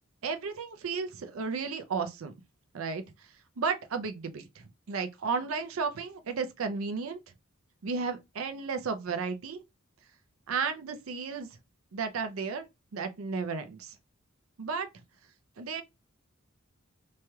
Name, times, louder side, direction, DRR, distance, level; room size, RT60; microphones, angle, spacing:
voice 1, 0.2-2.4 2.7-3.3 3.6-7.2 7.8-9.6 10.5-11.5 11.9-12.7 12.9-14.0 14.6-14.9 15.6-15.8, right 5 dB, 75° right, 0.5 m, -33 dB
3.1 x 2.2 x 2.8 m
head